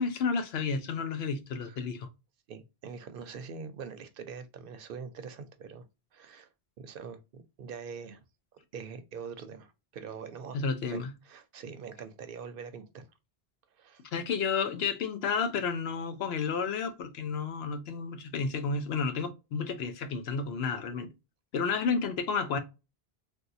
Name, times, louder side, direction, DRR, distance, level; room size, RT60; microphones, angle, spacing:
voice 1, 0.0-2.1 10.5-11.1 14.1-21.1 21.5-22.6, left 5 dB, 80° left, 0.9 m, -31 dB
voice 2, 2.5-5.8 6.1-6.5 6.8-8.2 8.7-11.0 11.2-13.1 13.7-14.0, right 6 dB, 65° right, 0.7 m, -43 dB
3.3 x 2.7 x 2.5 m
omnidirectional pair, 1.0 m